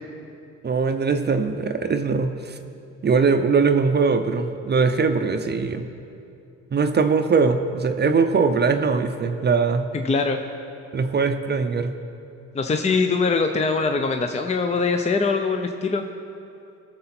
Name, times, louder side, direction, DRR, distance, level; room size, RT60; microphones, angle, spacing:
voice 1, 0.6-2.6 3.0-5.9 6.7-9.9 10.9-11.9, right 5 dB, 35° right, 7 dB, 0.6 m, -21 dB
voice 2, 9.9-10.4 12.5-16.1, left 4 dB, 20° left, 5 dB, 0.6 m, -22 dB
17.0 x 6.7 x 4.3 m, 2.6 s
cardioid pair, 90°, 30 cm